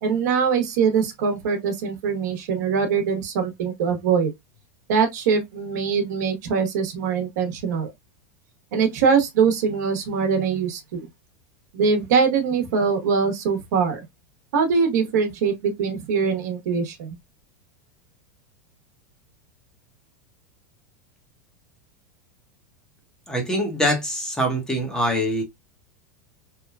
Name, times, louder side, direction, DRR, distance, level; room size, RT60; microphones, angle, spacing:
voice 1, 0.0-4.3 4.9-7.9 8.7-11.1 11.7-14.0 14.5-17.2, right 6 dB, 75° right, 1.0 m, -22 dB
voice 2, 23.3-25.4, equal, 5° left, 0.8 m, -24 dB
3.0 x 2.2 x 2.2 m
supercardioid pair, 140°, 9 cm